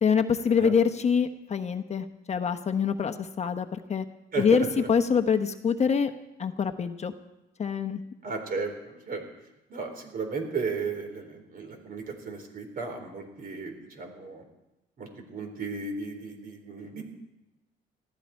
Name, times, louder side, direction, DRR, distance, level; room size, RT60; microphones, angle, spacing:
voice 1, 0.0-4.0 4.3-6.1 6.4-7.1 7.6-8.0, left 6 dB, 35° left, 7 dB, 1.0 m, -25 dB
voice 2, 4.3-4.9 8.2-9.2 9.7-14.4 15.0-17.0, right 4 dB, 50° right, 4 dB, 4.2 m, -35 dB
20.0 x 14.5 x 4.5 m, 0.96 s
cardioid pair, 100°, 19 cm